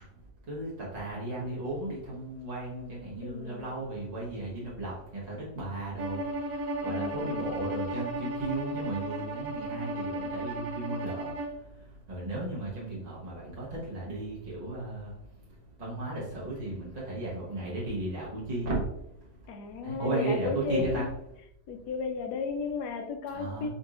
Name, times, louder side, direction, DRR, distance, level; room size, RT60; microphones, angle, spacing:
voice 1, 0.5-6.2 6.8-11.3 12.1-15.1 15.8-18.8 19.8-21.1 23.3-23.7, right 2 dB, 30° right, -6 dB, 0.9 m, -35 dB
voice 2, 3.2-3.7 6.8-7.4 19.5-21.1 21.7-23.7, left 5 dB, 75° left, 5 dB, 1.2 m, -34 dB
Bowed string instrument, 6.0-11.6, right 1 dB, 65° right, 1.0 m, -34 dB
4.4 x 4.0 x 2.5 m, 0.79 s
omnidirectional pair, 1.9 m